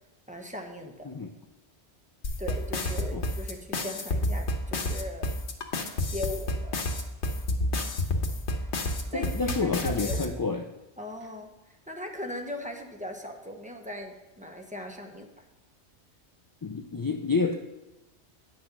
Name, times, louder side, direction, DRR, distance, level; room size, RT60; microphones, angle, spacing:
voice 1, 0.3-1.1 2.4-5.3 6.1-6.8 8.6-8.7 9.1-10.4 11.0-15.3, left 1 dB, 5° right, 2 dB, 1.0 m, -39 dB
sound 1, 2.2-10.2, left 2 dB, 80° left, 1.4 m, -29 dB
voice 2, 9.1-10.6 16.6-17.6, left 4 dB, 30° left, 4 dB, 0.3 m, -29 dB
10.0 x 6.3 x 6.1 m, 1.0 s
omnidirectional pair, 1.1 m